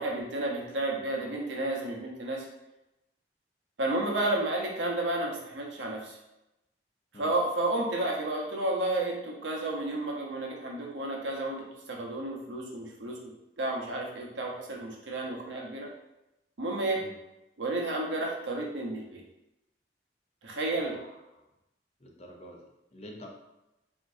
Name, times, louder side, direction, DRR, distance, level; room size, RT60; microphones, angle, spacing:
voice 1, 0.0-2.5 3.8-6.2 7.1-13.2 13.6-15.9 16.6-17.0 17.6-19.2 20.4-20.9, right 2 dB, 85° right, -1 dB, 0.9 m, -31 dB
voice 2, 20.8-21.4 22.0-23.3, left 1 dB, 35° left, 0 dB, 0.6 m, -48 dB
3.9 x 3.7 x 2.6 m, 0.93 s
head